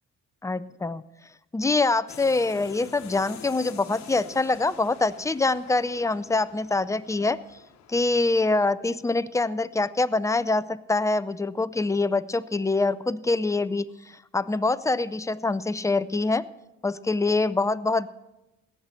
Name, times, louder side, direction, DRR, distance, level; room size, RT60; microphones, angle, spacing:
voice 1, 0.4-1.0 1.5-7.4 7.9-16.5 16.8-18.1, left 3 dB, 10° left, 14 dB, 0.5 m, -25 dB
sound 1, 2.1-8.7, left 9 dB, 65° left, 1.2 m, -47 dB
17.5 x 6.7 x 7.6 m, 0.97 s
cardioid pair, 90°, 30 cm